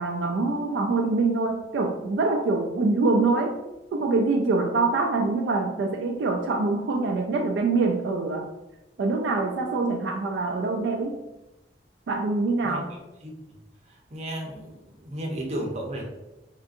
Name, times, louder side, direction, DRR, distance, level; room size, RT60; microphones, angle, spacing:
voice 1, 0.0-3.6 3.9-8.5 9.0-11.2 12.1-12.9, right 3 dB, 75° right, 2 dB, 0.3 m, -24 dB
voice 2, 12.6-13.0 13.2-13.6 13.9-16.0, right 1 dB, 40° right, 0 dB, 0.7 m, -34 dB
3.6 x 2.6 x 2.5 m, 0.97 s
head